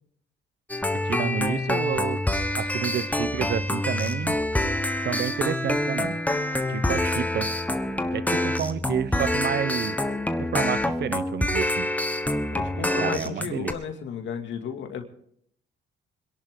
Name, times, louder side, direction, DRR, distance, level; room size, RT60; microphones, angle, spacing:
sound 1, 0.7-13.7, left 1 dB, 10° left, 1.3 m, -26 dB
voice 1, 1.0-2.2 2.6-4.4 5.0-6.2 6.7-7.5 8.1-10.0 10.4-11.9 12.7-13.7, right 9 dB, 60° right, 16 dB, 0.8 m, -30 dB
voice 2, 12.5-15.0, left 7 dB, 70° left, 4 dB, 2.4 m, -33 dB
25.5 x 11.0 x 3.8 m, 0.67 s
cardioid pair, 90°, 20 cm